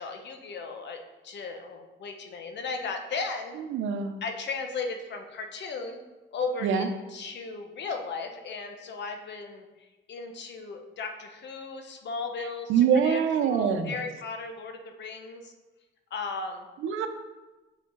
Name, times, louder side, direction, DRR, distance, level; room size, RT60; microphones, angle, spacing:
voice 1, 0.0-3.6 4.2-6.0 6.3-15.5 16.1-16.7, left 4 dB, 60° left, 5 dB, 1.0 m, -36 dB
voice 2, 3.7-4.2 6.6-6.9 12.7-13.9 16.8-17.1, right 7 dB, 85° right, 7 dB, 0.7 m, -24 dB
6.7 x 5.1 x 3.9 m, 1.1 s
cardioid pair, 90°, 20 cm